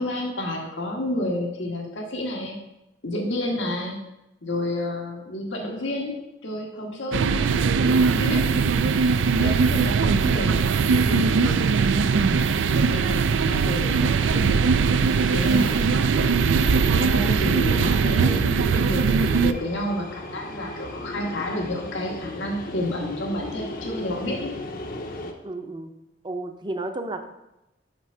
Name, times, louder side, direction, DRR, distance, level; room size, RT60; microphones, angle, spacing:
voice 1, 0.0-2.6 3.0-4.0 4.4-8.7 9.4-13.2 13.4-15.7 17.0-24.5, left 1 dB, 80° left, 0 dB, 1.5 m, -30 dB
sound 1, 7.1-19.5, right 5 dB, 80° right, 0.4 m, -20 dB
sound 2, 9.5-12.6 14.9-25.3, left 1 dB, 50° left, 0.9 m, -38 dB
voice 2, 25.4-25.9 26.2-27.2, right 2 dB, 25° right, 7 dB, 0.6 m, -32 dB
6.0 x 5.4 x 6.7 m, 0.91 s
head